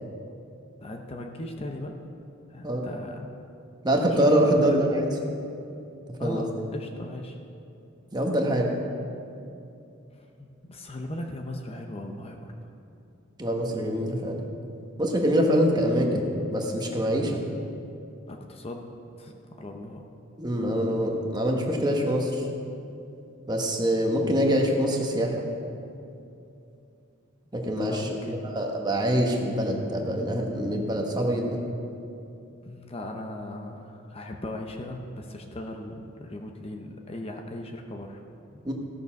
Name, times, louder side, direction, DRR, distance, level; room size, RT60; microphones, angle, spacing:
voice 1, 0.8-1.9 2.5-3.3 4.1-4.3 4.6-4.8 6.2-7.4 10.1-12.5 18.3-20.1 27.8-28.5 32.7-38.2 38.5-38.6, left 1 dB, 30° left, 3 dB, 0.7 m, -38 dB
voice 2, 3.8-5.1 6.2-6.4 8.1-8.7 13.4-14.4 15.0-16.3 16.5-17.4 20.4-22.5 23.5-25.4 27.5-31.6 38.6-38.7, equal, 20° right, 1 dB, 1.2 m, -24 dB
16.0 x 6.7 x 5.8 m, 2.7 s
head